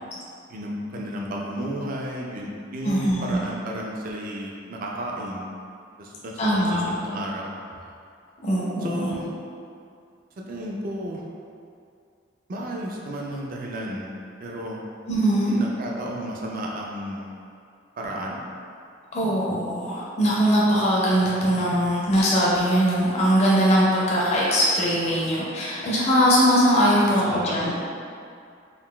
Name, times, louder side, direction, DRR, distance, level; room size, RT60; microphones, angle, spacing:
voice 1, 0.5-5.4 6.0-7.9 8.8-9.3 10.4-11.2 12.5-14.1 14.4-14.8 15.5-17.3 18.0-18.4 27.2-27.6, right 1 dB, 45° right, -2 dB, 0.4 m, -33 dB
voice 2, 2.8-3.5 6.4-7.0 8.4-9.2 15.1-15.6 19.1-27.7, equal, 35° left, -6 dB, 0.4 m, -21 dB
3.7 x 2.3 x 2.2 m, 2.4 s
head